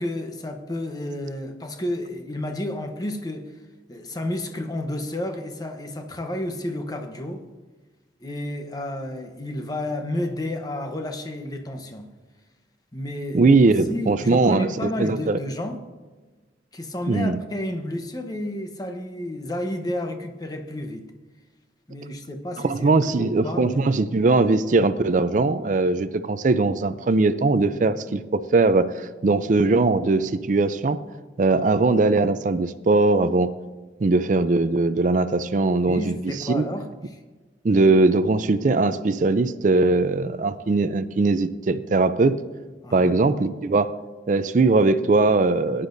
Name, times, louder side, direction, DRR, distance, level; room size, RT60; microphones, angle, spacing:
voice 1, 0.0-3.6 3.9-7.4 8.2-12.1 12.9-13.4 13.9-15.8 16.7-21.1 21.9-24.0 35.8-37.2 42.8-43.2, left 1 dB, 20° left, 5 dB, 0.9 m, -31 dB
voice 2, 13.3-15.4 17.1-17.4 22.6-31.0 31.4-33.5 34.0-36.1 36.5-36.6 37.6-42.3 42.9-43.9 44.3-45.9, right 3 dB, 45° right, 13 dB, 0.4 m, -20 dB
17.0 x 9.9 x 2.6 m, 1.3 s
head